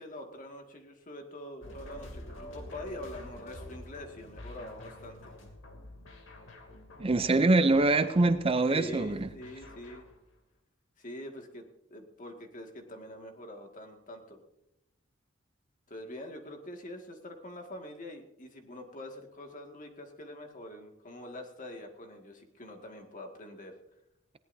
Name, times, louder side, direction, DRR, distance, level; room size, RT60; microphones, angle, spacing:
voice 1, 0.0-5.3 8.7-10.1 11.0-14.4 15.9-23.8, left 1 dB, 40° left, 4 dB, 2.0 m, -45 dB
sound 1, 1.6-10.2, left 1 dB, 70° left, 2.7 m, -48 dB
voice 2, 7.0-9.3, right 2 dB, 30° right, 11 dB, 0.5 m, -24 dB
20.0 x 17.5 x 2.7 m, 0.82 s
head